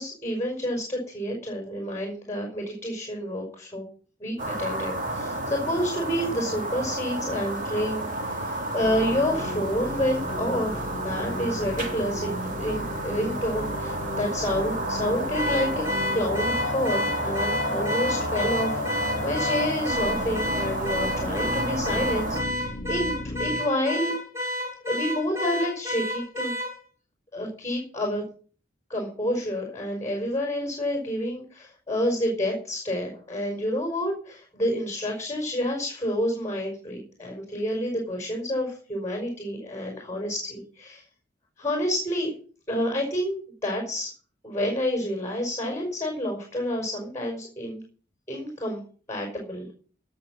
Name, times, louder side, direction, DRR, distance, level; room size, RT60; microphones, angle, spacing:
voice 1, 0.0-3.8 4.2-12.3 12.6-15.8 16.1-24.1 24.9-26.5 27.3-28.2 28.9-41.0 41.6-42.3 42.7-44.1 44.4-47.8 48.3-48.8 49.1-49.7, left 1 dB, 15° left, 2 dB, 5.2 m, -29 dB
sound 1, 4.4-22.4, right 1 dB, 45° right, 3.4 m, -31 dB
sound 2, 8.8-23.6, left 2 dB, 50° left, 1.7 m, -34 dB
Car / Alarm, 15.3-26.8, left 1 dB, 15° right, 7.5 m, -30 dB
18.0 x 6.3 x 7.3 m, 0.41 s
head